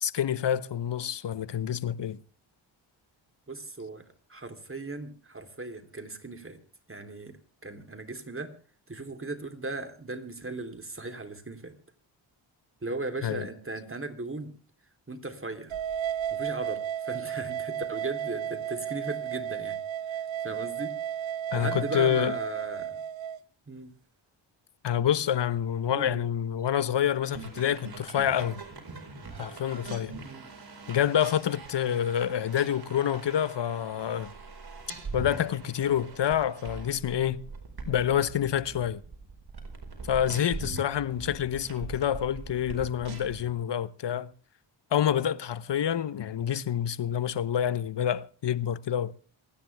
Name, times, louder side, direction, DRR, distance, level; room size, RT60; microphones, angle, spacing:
voice 1, 0.0-2.2 13.2-13.5 21.5-22.3 24.8-28.6 29.4-30.2 30.9-34.3 35.1-37.4 37.9-39.0 40.1-44.3 44.9-49.1, left 9 dB, 60° left, 1.0 m, -27 dB
voice 2, 3.5-4.0 4.3-6.6 6.9-7.4 7.6-8.5 8.9-11.7 12.8-14.5 15.1-15.8 16.3-19.8 20.1-20.2 20.4-20.9 21.5-23.0 23.7-23.9 25.9-26.2 30.2-30.5 40.6-40.8, right 2 dB, 25° right, 3.4 m, -37 dB
sound 1, 15.7-23.4, right 9 dB, 65° right, 0.9 m, -33 dB
sound 2, 27.2-43.5, right 4 dB, 50° right, 4.8 m, -42 dB
28.0 x 10.0 x 3.5 m
supercardioid pair, 45°, 49 cm